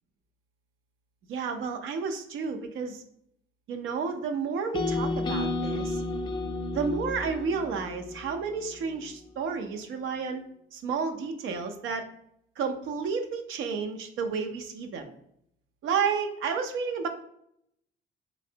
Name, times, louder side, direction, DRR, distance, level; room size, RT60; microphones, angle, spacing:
voice 1, 1.3-3.0 3.7-6.0 6.7-10.4 10.7-12.1 12.6-15.1 15.8-17.1, right 5 dB, 80° right, 6 dB, 0.5 m, -31 dB
sound 1, 4.7-8.9, left 2 dB, 25° left, 0.4 m, -32 dB
3.3 x 3.1 x 2.7 m, 0.72 s
cardioid pair, 90°, 20 cm